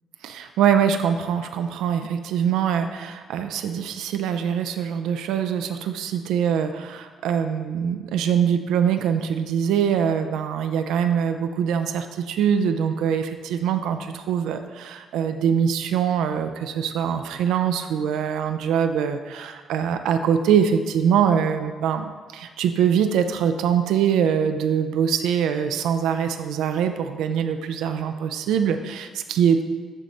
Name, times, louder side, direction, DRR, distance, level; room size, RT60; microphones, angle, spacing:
voice 1, 0.2-29.6, right 8 dB, 90° right, 7 dB, 0.3 m, -23 dB
9.7 x 3.3 x 4.0 m, 1.5 s
cardioid pair, 90°, 0 cm